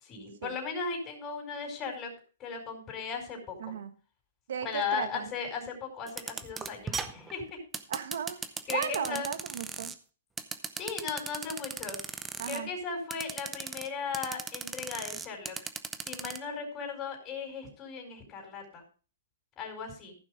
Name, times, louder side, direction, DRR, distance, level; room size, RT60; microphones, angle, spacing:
voice 1, 0.0-2.1 2.4-3.7 4.6-7.6 8.7-9.3 10.7-12.0 12.4-15.6 16.0-18.8 19.6-20.1, left 5 dB, 25° left, 0 dB, 4.6 m, -37 dB
voice 2, 3.6-3.9 4.5-5.3 7.9-8.4 8.7-9.9 12.4-12.7, right 8 dB, 70° right, 10 dB, 1.4 m, -35 dB
sound 1, 6.1-9.9 10.4-12.6 13.1-13.9 14.1-16.4, right 5 dB, 10° right, 0.7 m, -37 dB
15.0 x 6.2 x 4.9 m, 0.39 s
hypercardioid pair, 145°, 0 cm